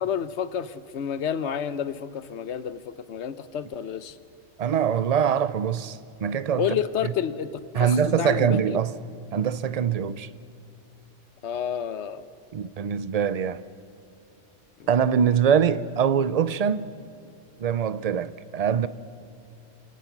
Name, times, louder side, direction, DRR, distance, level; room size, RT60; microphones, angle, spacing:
voice 1, 0.0-4.2 6.6-8.8 11.4-12.2 14.8-14.9, left 8 dB, 75° left, 1.1 m, -30 dB
voice 2, 4.6-6.7 7.7-8.9 9.3-10.3 12.5-13.6 14.9-16.9 17.6-18.9, right 7 dB, 45° right, 0.5 m, -23 dB
28.5 x 18.0 x 6.0 m
omnidirectional pair, 1.2 m